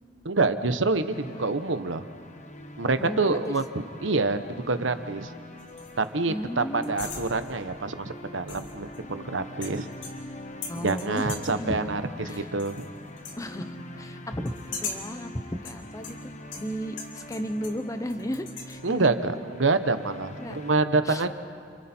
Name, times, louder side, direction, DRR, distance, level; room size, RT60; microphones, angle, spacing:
voice 1, 0.2-2.1 2.8-3.6 4.0-5.3 6.0-9.9 10.8-12.9 18.8-21.3, right 3 dB, 85° right, 9 dB, 1.2 m, -26 dB
sound 1, 1.1-20.8, left 1 dB, 40° left, 1.2 m, -44 dB
voice 2, 3.0-3.5 6.3-7.0 10.7-11.9 12.3-12.5 13.4-19.3 20.4-20.6 21.0-21.2, equal, 15° left, 9 dB, 1.0 m, -34 dB
sound 2, 5.6-6.1 6.8-7.7 8.5-9.2 9.6-10.4 10.6-11.7 12.3-12.9 13.2-13.4 14.5-15.2 15.7-17.8 18.1-18.8, left 4 dB, 75° left, 2.8 m, -40 dB
29.5 x 27.5 x 4.5 m, 2.3 s
head